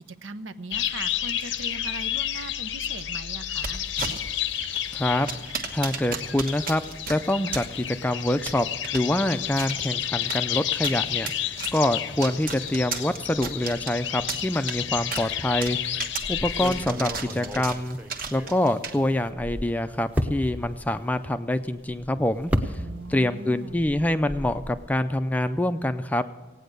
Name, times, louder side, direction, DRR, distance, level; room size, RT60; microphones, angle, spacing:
voice 1, 0.0-3.8 22.7-23.9, right 2 dB, 75° right, 11 dB, 0.8 m, -40 dB
sound 1, 0.7-16.9, left 11 dB, 65° left, 0.7 m, -31 dB
sound 2, 3.5-19.3, right 4 dB, 45° right, 1.3 m, -37 dB
voice 2, 4.9-5.3 5.7-6.8 7.1-8.7 8.9-18.0 18.3-22.8 23.1-26.2, left 1 dB, 10° left, 9 dB, 0.4 m, -26 dB
sound 3, 16.2-18.9 19.2-23.3 23.6-24.9, equal, 5° right, 0.8 m, -33 dB
17.5 x 9.1 x 6.6 m, 1.3 s
head